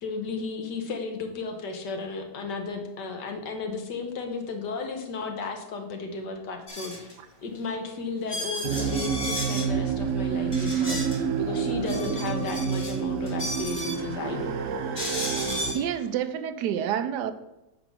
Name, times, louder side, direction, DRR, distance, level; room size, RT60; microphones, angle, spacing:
voice 1, 0.0-7.1 7.4-14.6, left 4 dB, 85° left, 4 dB, 1.7 m, -34 dB
sound 1, 6.7-7.1 7.7-7.8 8.3-9.7 10.5-11.2 11.7-12.9 13.3-14.0 14.9-15.8, left 1 dB, 25° left, 2.0 m, -34 dB
sound 2, 8.6-15.7, right 6 dB, 65° right, 0.8 m, -28 dB
voice 2, 15.7-17.3, right 9 dB, 85° right, 10 dB, 1.2 m, -28 dB
7.7 x 3.6 x 6.1 m, 0.91 s
omnidirectional pair, 1.8 m